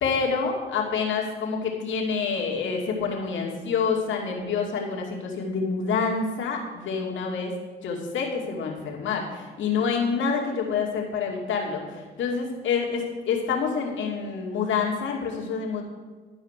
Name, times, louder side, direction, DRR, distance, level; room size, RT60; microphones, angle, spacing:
voice 1, 0.0-7.5 7.8-15.8, left 5 dB, 75° left, -1 dB, 2.6 m, -27 dB
12.5 x 5.1 x 8.2 m, 1.4 s
cardioid pair, 90°, 20 cm